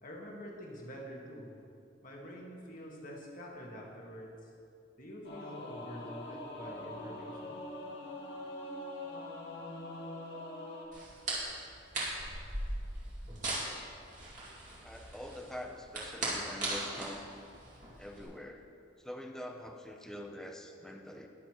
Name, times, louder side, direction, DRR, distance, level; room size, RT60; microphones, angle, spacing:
voice 1, 0.0-1.5 2.0-4.5 5.0-7.6, equal, 45° left, -2 dB, 1.7 m, -47 dB
Singing / Musical instrument, 5.2-10.9, left 1 dB, 75° left, 1.9 m, -43 dB
sound 1, 10.9-18.2, right 2 dB, 40° right, 2.5 m, -39 dB
voice 2, 14.8-17.2 18.0-18.7 19.0-21.3, left 1 dB, 5° left, 3 dB, 0.6 m, -45 dB
20.0 x 6.7 x 3.1 m, 2.5 s
head